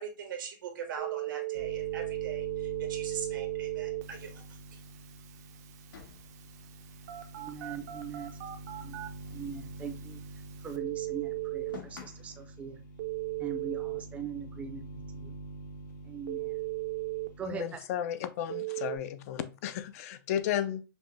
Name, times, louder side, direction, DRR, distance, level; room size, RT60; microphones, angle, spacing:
voice 1, 0.0-4.4, right 6 dB, 85° right, 1.3 m, -41 dB
Telephone, 1.0-11.8 13.0-14.0 16.3-17.3 18.5-19.0, right 20 dB, 55° right, 0.6 m, -37 dB
sound 1, 1.5-17.5, right 1 dB, 70° left, 0.9 m, -47 dB
sound 2, 3.0-4.3 4.7-4.8 5.1-5.2 5.9-8.4 8.6-10.5 10.7-12.5, left 7 dB, 90° left, 1.4 m, -54 dB
voice 2, 7.4-8.4 8.8-9.0 9.3-10.2 10.6-12.8 13.4-15.3 16.0-16.6 17.4-17.8, right 6 dB, 15° right, 0.5 m, -41 dB
voice 3, 17.5-20.8, left 10 dB, 50° left, 0.4 m, -33 dB
5.3 x 2.1 x 3.2 m
hypercardioid pair, 150°, 11 cm